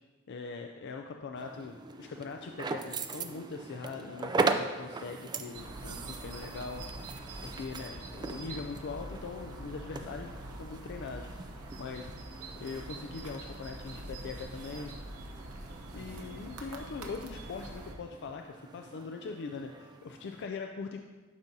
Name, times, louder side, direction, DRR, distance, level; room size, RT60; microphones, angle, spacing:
voice 1, 0.3-6.9 7.4-11.5 11.8-12.1 12.6-14.9 15.9-21.0, left 4 dB, 55° left, 4 dB, 0.4 m, -41 dB
sound 1, 1.3-20.5, right 4 dB, 20° right, 0.3 m, -40 dB
sound 2, 5.5-17.9, right 2 dB, 85° right, 0.9 m, -44 dB
12.0 x 5.2 x 2.7 m, 1.3 s
head